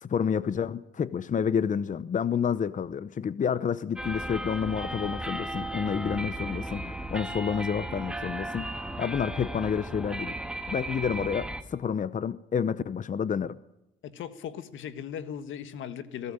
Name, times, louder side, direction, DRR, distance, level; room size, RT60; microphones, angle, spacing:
voice 1, 0.0-10.4 10.7-13.6, left 7 dB, 40° left, 0.8 m, -29 dB
sound 1, 4.0-11.6, right 1 dB, 5° right, 1.7 m, -35 dB
voice 2, 14.0-16.3, left 9 dB, 80° left, 1.6 m, -38 dB
19.5 x 17.0 x 8.9 m
cardioid pair, 90°, 20 cm